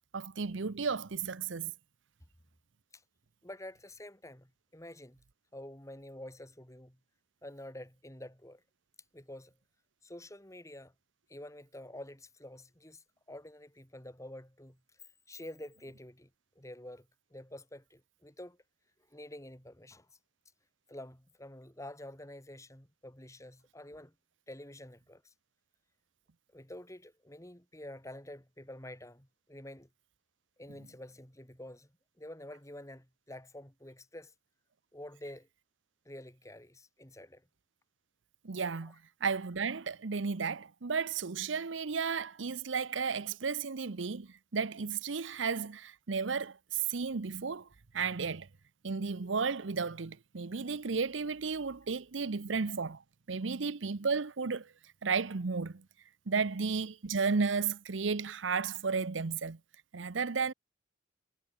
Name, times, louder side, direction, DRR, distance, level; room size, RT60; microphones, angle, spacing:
voice 1, 0.1-1.7 38.4-38.9 39.2-47.7 47.9-48.5 48.8-53.0 53.3-54.7 55.0-55.8 56.3-59.6 59.9-60.5, right 5 dB, 85° right, 0.8 m, -33 dB
voice 2, 3.4-5.2 5.5-7.0 7.4-8.6 9.1-9.6 10.0-10.9 11.3-14.8 15.3-16.3 16.6-18.6 19.1-20.1 20.9-24.1 24.5-25.3 26.5-29.9 30.6-34.3 34.9-35.5 36.1-37.4, left 1 dB, 15° left, 3.6 m, -48 dB
head